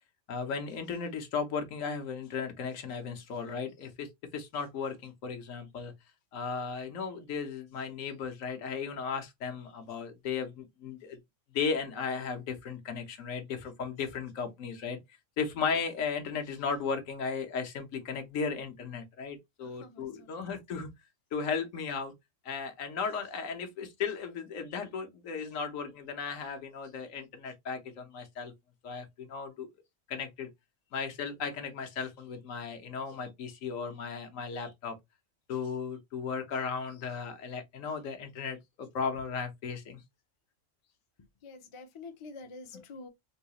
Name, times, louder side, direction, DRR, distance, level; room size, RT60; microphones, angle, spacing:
voice 1, 0.3-5.9 6.3-11.2 11.5-15.0 15.4-20.9 21.3-22.1 22.4-28.5 28.8-29.7 30.1-30.5 30.9-34.9 35.5-40.0, left 5 dB, 75° left, 1.2 m, -36 dB
voice 2, 19.6-20.5 41.4-43.1, left 3 dB, 45° left, 0.4 m, -48 dB
3.8 x 2.3 x 2.8 m
omnidirectional pair, 1.4 m